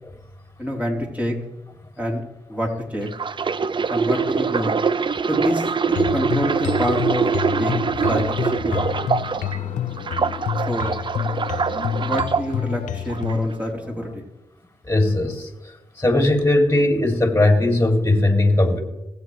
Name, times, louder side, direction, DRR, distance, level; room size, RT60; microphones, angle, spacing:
voice 1, 0.6-1.3 2.0-3.1 3.9-4.8 5.3-8.8 10.7-10.9 12.0-14.2, equal, 10° right, -2 dB, 3.3 m, -27 dB
sound 1, 3.1-9.6 10.0-12.4 13.1-13.3, right 5 dB, 40° right, 0.5 m, -23 dB
sound 2, 5.9-13.5, left 10 dB, 75° left, 0.6 m, -28 dB
sound 3, 6.7-14.2, left 4 dB, 40° left, 1.1 m, -40 dB
voice 2, 14.8-18.8, left 2 dB, 20° left, 4 dB, 2.4 m, -19 dB
20.5 x 8.0 x 3.1 m, 0.97 s
supercardioid pair, 40°, 13 cm